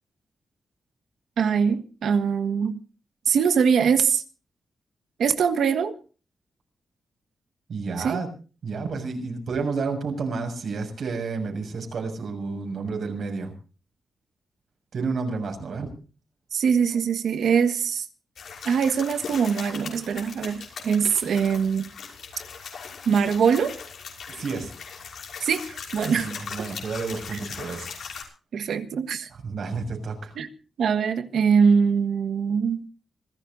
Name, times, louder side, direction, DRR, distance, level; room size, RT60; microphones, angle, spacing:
voice 1, 1.4-2.8 3.3-4.2 5.2-6.0 8.0-8.2 16.5-18.0 18.6-21.9 23.0-23.7 25.4-26.3 28.5-29.3 30.4-30.5 30.8-32.9, right 6 dB, 85° right, 1.5 m, -22 dB
voice 2, 7.7-8.3 8.6-13.5 14.9-15.9 24.4-24.7 26.1-28.0 29.3-30.3, right 4 dB, 60° right, 6.7 m, -30 dB
sound 1, 18.4-28.2, left 6 dB, 75° left, 6.3 m, -39 dB
26.5 x 16.5 x 2.7 m
wide cardioid pair, 150°, 0 cm